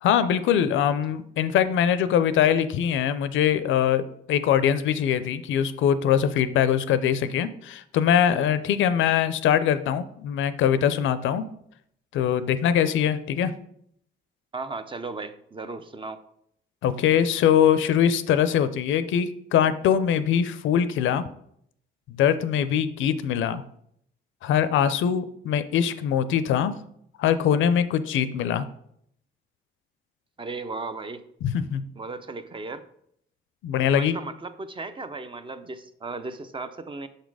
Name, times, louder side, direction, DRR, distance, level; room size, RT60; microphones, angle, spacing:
voice 1, 0.0-11.5 12.1-13.5 16.8-21.2 22.1-23.6 24.4-26.7 27.2-28.7 31.4-31.8 33.6-34.2, left 9 dB, 75° left, 13 dB, 0.5 m, -22 dB
voice 2, 14.5-16.2 30.4-31.2 32.0-32.8 33.9-37.1, right 3 dB, 25° right, 10 dB, 0.5 m, -35 dB
6.4 x 4.1 x 4.7 m, 0.71 s
cardioid pair, 90°, 20 cm